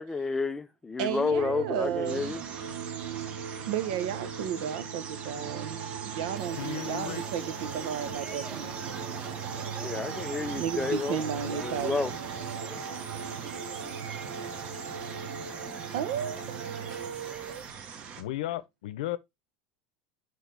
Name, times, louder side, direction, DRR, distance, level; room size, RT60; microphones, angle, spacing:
voice 1, 0.0-2.4 9.8-12.1, left 4 dB, 10° left, 0.4 m, -31 dB
voice 2, 1.0-2.4 3.6-9.0 10.6-12.0 15.9-17.6, right 9 dB, 65° right, 1.1 m, -34 dB
sound 1, 1.3-17.1, right 6 dB, 85° right, 1.9 m, -39 dB
sound 2, 2.0-18.2, right 6 dB, 30° right, 1.1 m, -41 dB
sound 3, 6.3-17.7, right 3 dB, 15° right, 1.9 m, -49 dB
voice 3, 6.5-7.2 18.2-19.2, left 15 dB, 80° left, 0.8 m, -34 dB
6.4 x 5.5 x 3.4 m
supercardioid pair, 165°, 4 cm